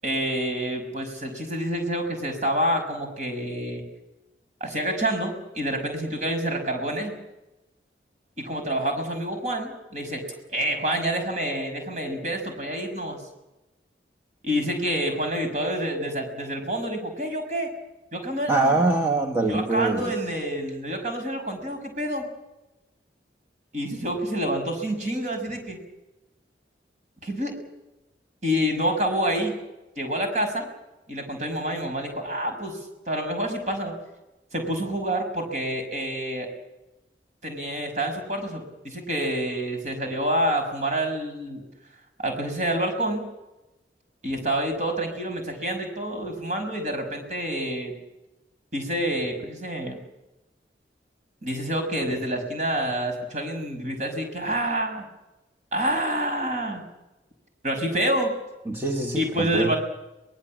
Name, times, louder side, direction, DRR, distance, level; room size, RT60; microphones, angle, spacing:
voice 1, 0.0-3.8 4.6-7.1 8.4-10.2 10.5-13.2 14.4-17.7 18.1-18.7 19.5-22.3 23.7-25.8 27.2-27.5 28.4-29.6 30.0-30.7 31.1-32.8 33.1-33.9 34.5-36.5 37.4-41.6 42.2-43.2 44.2-47.9 48.7-50.0 51.4-55.1 55.7-56.8 57.6-58.3 59.1-59.8, right 1 dB, 40° right, 4 dB, 6.0 m, -27 dB
voice 2, 18.5-20.1 58.7-59.7, right 2 dB, 15° right, 0 dB, 1.3 m, -24 dB
23.5 x 20.5 x 7.5 m, 0.98 s
head